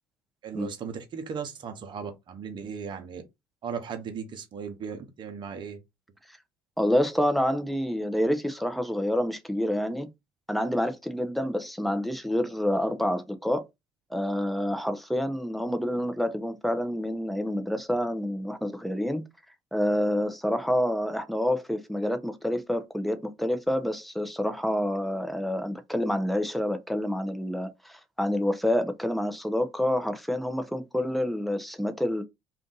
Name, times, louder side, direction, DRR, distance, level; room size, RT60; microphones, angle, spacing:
voice 1, 0.4-3.2 3.6-5.8, right 6 dB, 50° right, 0.9 m, -37 dB
voice 2, 6.8-10.1 10.5-13.6 14.1-19.2 19.7-32.2, equal, ahead, 0.7 m, -28 dB
2.6 x 2.5 x 3.8 m
hypercardioid pair, 70°, 10 cm